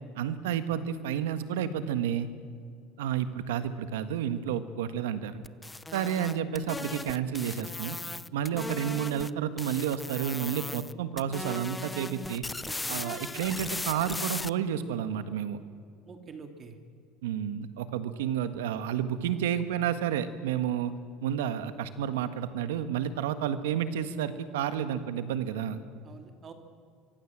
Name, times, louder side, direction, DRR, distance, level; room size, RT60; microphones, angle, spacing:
voice 1, 0.2-2.3 3.0-5.4 5.9-8.0 8.3-12.4 12.9-15.6 17.2-20.9 21.2-25.8, right 9 dB, 90° right, 12 dB, 1.5 m, -31 dB
sound 1, 5.4-9.3 9.6-10.9 11.2-14.5, left 2 dB, 10° left, 0.6 m, -38 dB
voice 2, 12.6-13.0 16.1-16.8 26.0-26.5, right 5 dB, 35° right, 6 dB, 2.9 m, -46 dB
24.5 x 24.0 x 7.5 m, 2.2 s
supercardioid pair, 100°, 0 cm